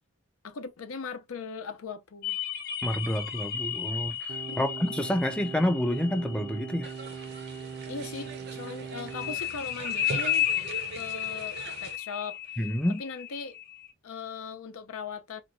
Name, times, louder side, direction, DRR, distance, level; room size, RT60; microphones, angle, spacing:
voice 1, 0.4-2.4 4.5-4.6 7.9-10.5 10.9-12.6 13.0-13.6 14.0-15.4, left 5 dB, 80° left, 0.6 m, -39 dB
sound 1, 2.2-7.8 9.1-13.9, left 10 dB, 40° left, 0.7 m, -34 dB
voice 2, 2.8-6.9 12.6-13.0, left 1 dB, 5° left, 0.3 m, -28 dB
sound 2, 4.3-9.3, right 6 dB, 85° right, 0.7 m, -40 dB
sound 3, 6.8-12.0, right 4 dB, 50° right, 0.5 m, -41 dB
2.9 x 2.2 x 3.7 m
head